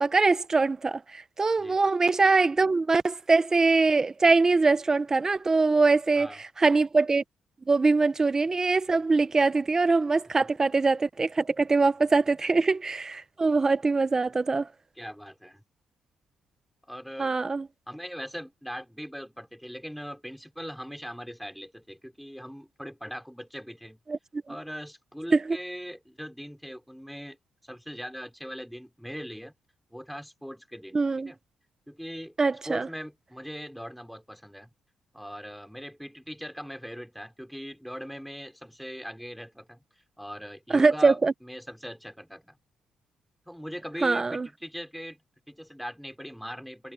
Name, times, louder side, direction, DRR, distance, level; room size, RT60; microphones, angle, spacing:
voice 1, 0.0-7.2 7.7-14.7 17.2-17.7 24.1-24.2 25.3-25.6 30.9-31.3 32.4-32.9 40.7-41.3 44.0-44.5, right 3 dB, 25° right, 1.0 m, -23 dB
voice 2, 15.0-15.6 16.9-17.4 17.9-24.0 24.5-27.4 27.6-29.5 29.9-31.4 31.9-32.3 32.7-34.7 35.1-39.8 40.2-42.6 43.5-45.2 45.5-46.9, equal, ahead, 4.2 m, -40 dB
cardioid pair, 85°, 2 cm